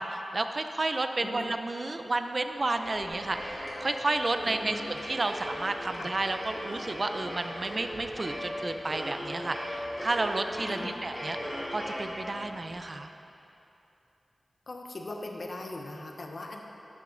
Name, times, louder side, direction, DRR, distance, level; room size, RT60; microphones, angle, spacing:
voice 1, 0.0-11.4 11.7-13.1, right 2 dB, 40° right, 7 dB, 0.5 m, -31 dB
sound 1, 2.3-12.7, equal, 10° left, 2.6 m, -38 dB
voice 2, 4.4-5.0 5.9-6.1 10.7-10.9 14.7-16.6, left 2 dB, 45° left, 2 dB, 1.0 m, -40 dB
12.5 x 8.7 x 3.9 m, 2.9 s
wide cardioid pair, 125°, 0 cm